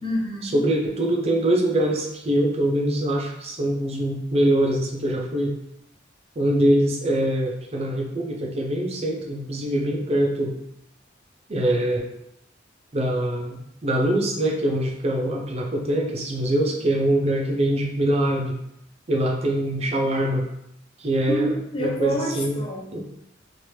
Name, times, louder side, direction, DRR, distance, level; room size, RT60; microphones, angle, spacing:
voice 1, 0.0-0.6 21.3-23.0, right 1 dB, 25° left, -3 dB, 0.7 m, -27 dB
voice 2, 0.5-5.6 6.4-10.5 11.5-12.1 12.9-18.6 19.1-20.4 21.0-21.5 21.8-22.6 22.9-23.0, right 1 dB, 30° right, 0 dB, 0.5 m, -23 dB
3.0 x 2.5 x 3.1 m, 0.80 s
head